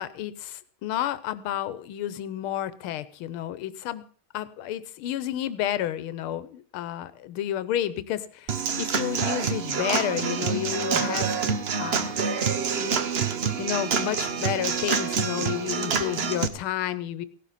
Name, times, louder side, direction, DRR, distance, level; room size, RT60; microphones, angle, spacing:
voice 1, 0.0-4.0 4.3-11.4 11.8-13.0 13.6-17.3, left 11 dB, 80° left, 15 dB, 1.6 m, -31 dB
Human voice / Acoustic guitar / Drum, 8.5-16.5, right 6 dB, 75° right, 0.5 m, -27 dB
17.0 x 12.0 x 4.1 m, 0.42 s
omnidirectional pair, 2.3 m